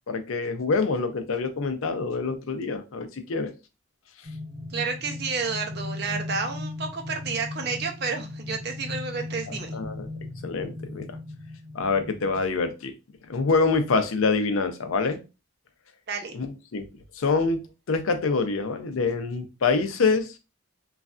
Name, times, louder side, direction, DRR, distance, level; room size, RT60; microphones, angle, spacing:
voice 1, 0.1-3.5 9.5-10.1 10.4-11.1 11.7-12.9 13.3-15.2 16.3-16.8 17.2-17.6 17.9-20.3, left 4 dB, 85° left, 7 dB, 0.5 m, -26 dB
sound 1, 4.2-12.4, left 2 dB, 80° right, 1.1 m, -37 dB
voice 2, 4.7-9.8 16.1-16.4, right 4 dB, 50° right, 4 dB, 0.5 m, -30 dB
3.1 x 2.5 x 2.4 m, 0.29 s
head